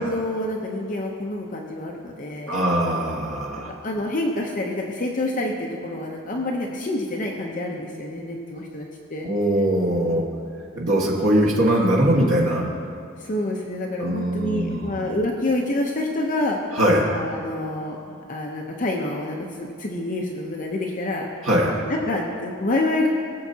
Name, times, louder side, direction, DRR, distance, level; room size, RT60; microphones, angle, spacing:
voice 1, 0.0-2.7 3.8-9.3 13.2-16.6 17.1-21.3 21.7-23.1, left 1 dB, 40° left, 0 dB, 0.7 m, -27 dB
voice 2, 2.5-3.7 9.2-10.2 10.7-12.7 14.0-15.0 16.7-17.1 21.4-21.8, right 1 dB, 75° right, -3 dB, 1.6 m, -21 dB
20.0 x 7.0 x 2.8 m, 2.3 s
head